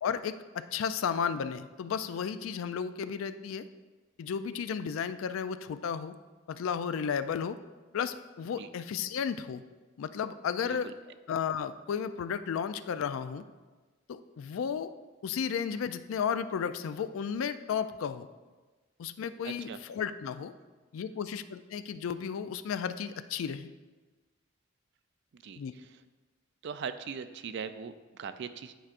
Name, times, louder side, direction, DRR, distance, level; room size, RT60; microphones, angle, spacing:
voice 1, 0.0-3.7 4.2-6.1 6.5-7.6 7.9-9.6 10.0-10.9 11.3-13.4 14.1-14.9 15.2-18.3 19.0-20.5 20.9-23.7 25.6-25.7, left 7 dB, 90° left, 12 dB, 0.3 m, -33 dB
voice 2, 19.4-19.8 25.3-25.6 26.6-28.7, right 6 dB, 60° right, 11 dB, 0.4 m, -40 dB
10.0 x 4.7 x 2.5 m, 1.3 s
head